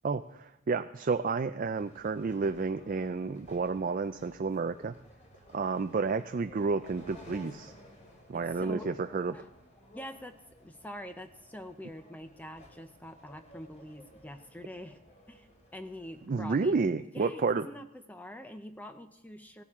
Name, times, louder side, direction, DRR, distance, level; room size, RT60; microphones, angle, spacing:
voice 1, 0.0-4.9 5.5-7.7 8.3-9.4 16.3-17.7, right 4 dB, 40° right, 8 dB, 0.4 m, -31 dB
sound 1, 1.7-16.8, left 1 dB, 35° left, 3.2 m, -55 dB
voice 2, 8.3-8.9 9.3-9.5 9.9-15.0 15.3-16.8 17.0-19.6, equal, 10° left, 7 dB, 0.6 m, -45 dB
17.5 x 14.0 x 3.6 m, 0.88 s
head